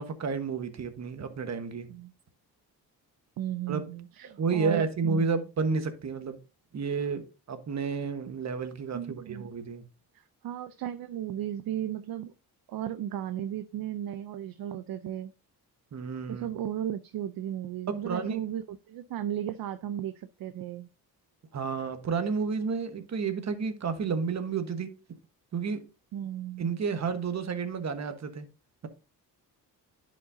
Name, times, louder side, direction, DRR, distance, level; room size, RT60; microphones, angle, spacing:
voice 1, 0.0-1.9 3.7-3.8 4.2-6.4 6.7-9.8 15.9-16.5 17.9-18.4 21.5-24.9 25.5-25.8 26.6-28.5, right 5 dB, 45° right, 1.3 m, -31 dB
voice 2, 3.4-5.4 8.9-9.5 10.4-12.3 12.7-15.3 16.3-20.9 26.1-26.7, right 11 dB, 65° right, 0.6 m, -35 dB
10.5 x 5.3 x 2.6 m
cardioid pair, 105°, 39 cm